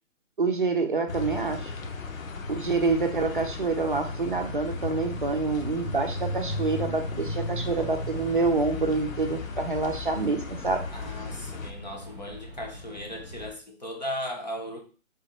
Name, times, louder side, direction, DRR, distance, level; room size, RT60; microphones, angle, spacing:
voice 1, 0.4-1.7 2.5-10.8, right 3 dB, 40° right, 4 dB, 0.5 m, -27 dB
sound 1, 1.1-11.7, left 3 dB, 85° left, 1.0 m, -35 dB
sound 2, 3.9-13.5, left 1 dB, ahead, 0.8 m, -45 dB
voice 2, 10.9-14.8, left 1 dB, 35° left, 2 dB, 0.6 m, -37 dB
3.7 x 2.9 x 4.2 m, 0.37 s
hypercardioid pair, 180°, 39 cm